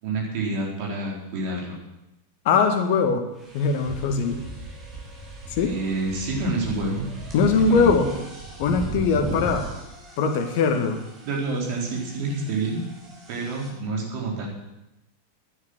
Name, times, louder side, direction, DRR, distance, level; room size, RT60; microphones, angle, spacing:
voice 1, 0.0-1.8 5.6-7.0 7.7-7.9 11.2-12.8 13.3-14.5, right 2 dB, 45° right, -2 dB, 4.1 m, -28 dB
voice 2, 2.5-3.2 3.5-4.4 5.5-5.7 7.3-8.1 8.6-9.6 10.2-11.0, left 5 dB, 50° left, 6 dB, 1.9 m, -21 dB
sound 1, 2.7-2.8 3.4-13.7, right 2 dB, 25° right, 4.7 m, -38 dB
11.5 x 10.5 x 7.9 m, 0.95 s
figure-of-eight pair, 90°, 0 cm